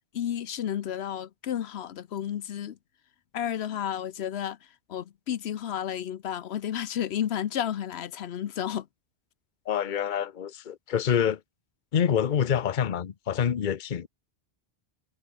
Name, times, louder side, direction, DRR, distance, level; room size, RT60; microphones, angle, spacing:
voice 1, 0.1-2.8 3.3-4.6 4.9-8.9, left 10 dB, 85° left, 1.0 m, -32 dB
voice 2, 9.7-11.4 11.9-14.1, left 8 dB, 50° left, 0.9 m, -26 dB
omnidirectional pair, 1.1 m